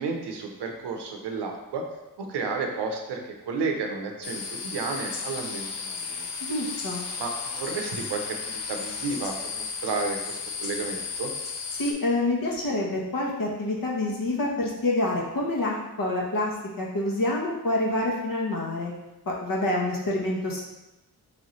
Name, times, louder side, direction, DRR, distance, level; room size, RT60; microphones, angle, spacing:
voice 1, 0.0-1.8 2.2-6.3 7.2-11.3, right 4 dB, 90° right, 3 dB, 0.7 m, -32 dB
sound 1, 4.2-11.9, left 5 dB, 90° left, 0.6 m, -34 dB
voice 2, 6.4-7.0 11.7-18.9 19.3-20.6, left 2 dB, 55° left, -2 dB, 1.1 m, -27 dB
3.4 x 3.0 x 3.9 m, 1.0 s
cardioid pair, 65°, 40 cm